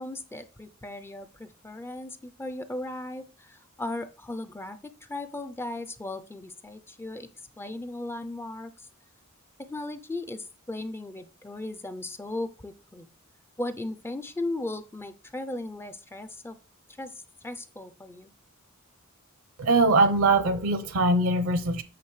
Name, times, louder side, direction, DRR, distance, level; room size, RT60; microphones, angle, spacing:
voice 1, 0.0-7.3 7.6-8.9 9.6-13.1 13.6-16.6 17.0-18.3, left 2 dB, 10° left, 0.3 m, -37 dB
voice 2, 19.6-21.8, right 2 dB, 70° right, 0.6 m, -22 dB
8.4 x 6.3 x 3.1 m
head